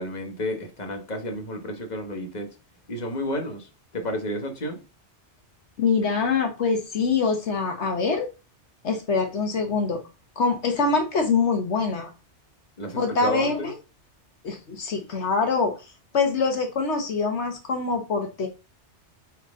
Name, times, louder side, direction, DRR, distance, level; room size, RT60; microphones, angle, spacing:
voice 1, 0.0-2.6 2.9-4.8 12.8-13.7, equal, 40° left, 1.6 m, -31 dB
voice 2, 5.8-8.3 8.8-10.0 10.4-12.1 13.0-13.7 14.4-15.8 16.1-18.5, left 4 dB, 75° left, 1.4 m, -24 dB
9.0 x 4.1 x 3.7 m
omnidirectional pair, 1.2 m